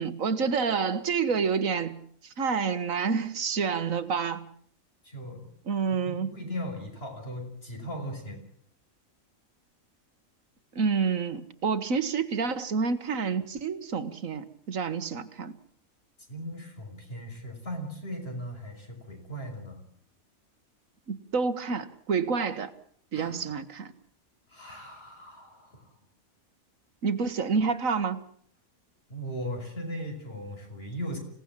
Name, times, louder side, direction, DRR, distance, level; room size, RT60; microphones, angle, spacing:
voice 1, 0.0-2.0 2.2-4.5 5.7-6.3 10.8-15.5 21.1-22.7 23.1-23.9 27.0-28.2, right 5 dB, 70° right, 13 dB, 1.7 m, -28 dB
voice 2, 5.0-5.5 6.0-8.4 16.3-19.9 23.1-23.5 24.5-25.9 29.1-31.2, equal, 45° left, 3 dB, 6.1 m, -38 dB
26.5 x 17.5 x 7.5 m, 0.62 s
omnidirectional pair, 1.4 m